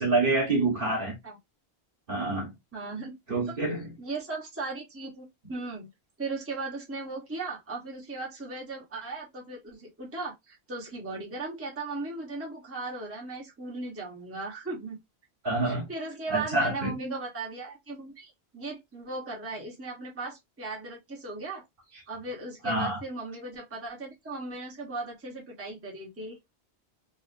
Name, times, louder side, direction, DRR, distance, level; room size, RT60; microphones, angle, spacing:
voice 1, 0.0-1.1 2.1-2.5 3.3-3.9 15.4-15.9 16.3-17.0 22.6-23.0, right 2 dB, 55° right, 1.2 m, -27 dB
voice 2, 2.7-3.1 4.0-5.9 6.2-15.0 15.7-21.6 22.1-26.4, right 3 dB, 15° right, 0.8 m, -37 dB
3.0 x 2.4 x 2.5 m
omnidirectional pair, 1.1 m